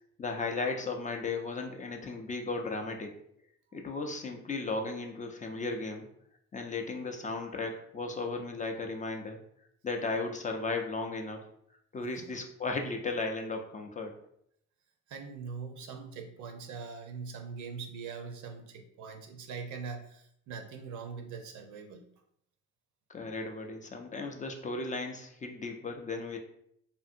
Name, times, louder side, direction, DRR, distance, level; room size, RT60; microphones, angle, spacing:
voice 1, 0.2-3.1 3.7-6.1 6.5-9.4 9.8-11.5 11.9-14.1 23.1-26.4, left 3 dB, 25° left, 3 dB, 0.4 m, -35 dB
voice 2, 15.1-22.1, right 5 dB, 75° right, 4 dB, 0.6 m, -42 dB
2.6 x 2.5 x 2.5 m, 0.71 s
cardioid pair, 90°, 30 cm